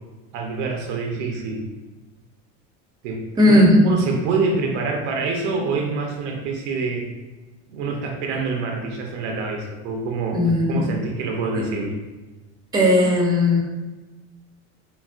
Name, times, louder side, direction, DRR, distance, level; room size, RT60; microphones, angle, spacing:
voice 1, 0.3-1.7 3.0-3.6 3.8-7.1 7.7-12.0, right 4 dB, 85° right, 1 dB, 0.7 m, -26 dB
voice 2, 3.4-3.8 10.3-10.9 11.5-11.7 12.7-13.6, left 1 dB, 10° right, -2 dB, 0.6 m, -16 dB
4.1 x 2.0 x 2.4 m, 1.2 s
supercardioid pair, 120°, 35 cm